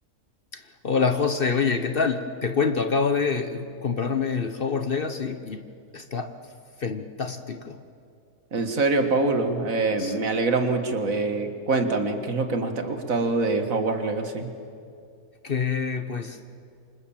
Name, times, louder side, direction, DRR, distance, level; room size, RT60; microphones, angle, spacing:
voice 1, 0.5-5.7 5.9-6.4 6.8-7.8 10.0-10.1 15.4-16.4, left 5 dB, 45° left, 9 dB, 1.0 m, -26 dB
voice 2, 8.5-14.5, right 3 dB, 65° right, 6 dB, 2.1 m, -25 dB
28.5 x 25.5 x 7.4 m, 2.4 s
omnidirectional pair, 1.5 m